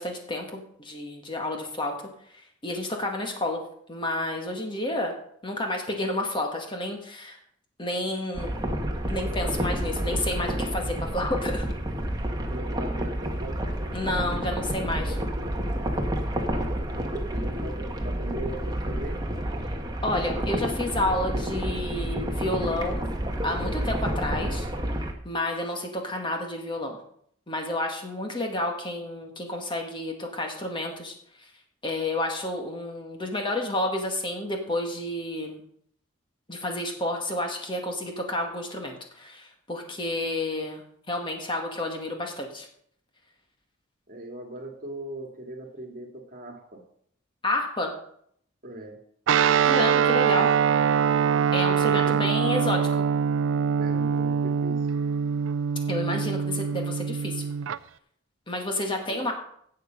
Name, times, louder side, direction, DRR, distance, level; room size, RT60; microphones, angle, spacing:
voice 1, 0.0-2.0 2.6-3.6 3.9-5.1 5.4-7.4 7.8-8.5 9.1-11.6 13.9-15.2 20.0-23.0 23.4-24.7 25.2-27.0 27.5-31.1 31.8-35.6 36.5-40.8 41.1-42.7 47.4-47.9 49.6-50.5 51.5-53.0 55.9-57.5 58.5-59.3, left 1 dB, 25° left, 2 dB, 1.8 m, -30 dB
sound 1, 8.3-25.1, equal, 20° right, 1.4 m, -29 dB
voice 2, 12.5-13.6 16.5-16.9 17.3-19.2 44.1-46.8 48.6-49.0 51.8-52.3 53.7-54.9 59.1-59.3, right 1 dB, 45° right, 3 dB, 2.1 m, -39 dB
Guitar, 49.3-57.8, right 7 dB, 70° right, 0.4 m, -23 dB
17.0 x 6.7 x 5.2 m, 0.67 s
head